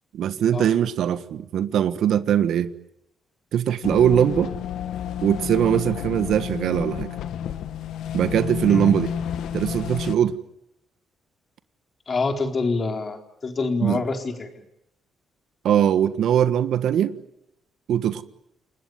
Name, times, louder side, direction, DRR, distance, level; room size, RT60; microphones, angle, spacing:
voice 1, 0.1-2.7 3.5-4.5 5.2-7.1 8.1-9.1 9.5-10.4 13.8-14.0 15.6-17.2 17.9-18.2, right 9 dB, 75° right, 1.4 m, -21 dB
sound 1, 3.8-10.2, left 9 dB, 80° left, 1.6 m, -30 dB
voice 2, 12.1-13.2 13.4-14.5, left 3 dB, 40° left, 4.1 m, -26 dB
29.0 x 19.5 x 9.5 m
cardioid pair, 90°, 0 cm